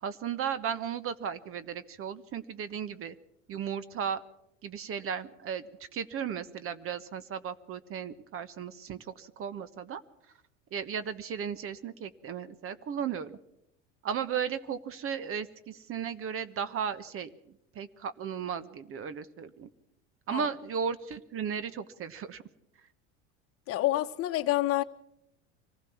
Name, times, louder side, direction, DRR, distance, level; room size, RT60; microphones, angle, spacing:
voice 1, 0.0-3.1 3.5-4.2 4.6-5.6 5.9-10.0 10.7-13.4 14.0-17.3 17.7-19.7 20.3-22.4, right 7 dB, 40° right, 1.2 m, -35 dB
voice 2, 23.7-24.8, left 15 dB, 40° left, 1.1 m, -28 dB
24.5 x 15.5 x 7.2 m
hypercardioid pair, 90°, 34 cm